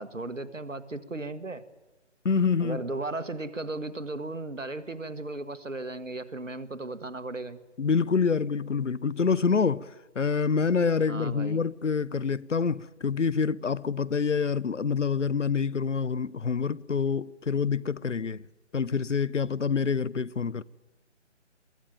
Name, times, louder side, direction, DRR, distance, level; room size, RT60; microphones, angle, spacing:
voice 1, 0.0-1.6 2.6-7.6 11.1-11.6, right 2 dB, 90° right, 1.6 m, -36 dB
voice 2, 2.2-2.8 7.8-18.4 18.7-20.6, left 5 dB, 80° left, 0.8 m, -26 dB
23.0 x 15.5 x 9.1 m
figure-of-eight pair, 155°, 37 cm